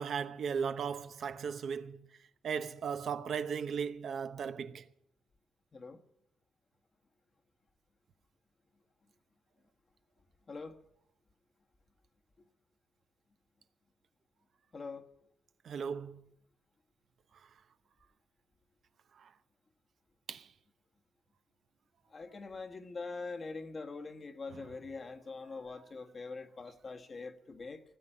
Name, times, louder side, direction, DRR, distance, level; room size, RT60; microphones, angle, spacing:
voice 1, 0.0-2.0 2.4-4.8 15.6-16.2 20.3-20.5, right 6 dB, 60° right, 0.8 m, -36 dB
voice 2, 10.5-10.8 14.7-15.0 22.1-27.8, left 3 dB, 35° left, 1.3 m, -43 dB
17.5 x 7.8 x 8.8 m
cardioid pair, 90°, 0 cm